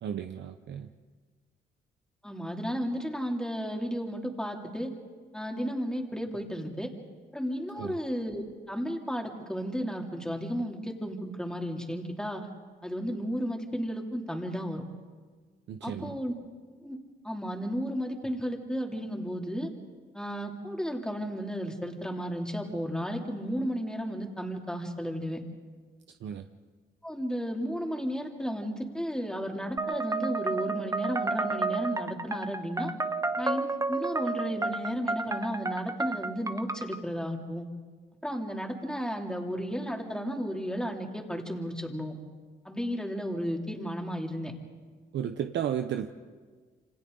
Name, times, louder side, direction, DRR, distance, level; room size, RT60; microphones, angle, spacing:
voice 1, 0.0-0.9 7.7-7.9 15.7-16.1 26.2-26.4 45.1-46.1, right 9 dB, 65° right, 7 dB, 0.9 m, -33 dB
voice 2, 2.2-4.9 5.3-6.9 7.3-8.4 8.7-12.5 12.8-14.8 15.8-16.3 16.8-17.0 17.2-19.7 20.1-25.4 27.0-32.9 33.4-37.7 38.2-42.2 42.6-44.5, equal, 5° left, 1 dB, 2.9 m, -33 dB
sound 1, 29.8-37.0, right 3 dB, 15° right, 1.0 m, -31 dB
27.5 x 26.0 x 3.9 m, 1.5 s
cardioid pair, 90°, 20 cm